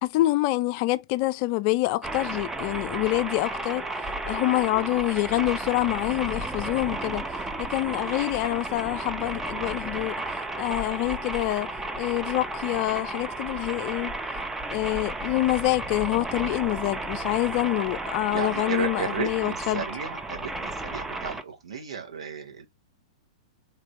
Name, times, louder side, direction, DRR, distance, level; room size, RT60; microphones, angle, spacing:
voice 1, 0.0-3.9 4.3-7.2 7.6-11.7 12.0-14.1 14.7-19.8, left 17 dB, 45° left, 0.4 m, -26 dB
sound 1, 2.0-21.4, right 2 dB, 10° right, 0.5 m, -33 dB
voice 2, 18.3-22.7, right 6 dB, 75° right, 1.5 m, -34 dB
3.7 x 3.3 x 2.9 m
hypercardioid pair, 105°, 3 cm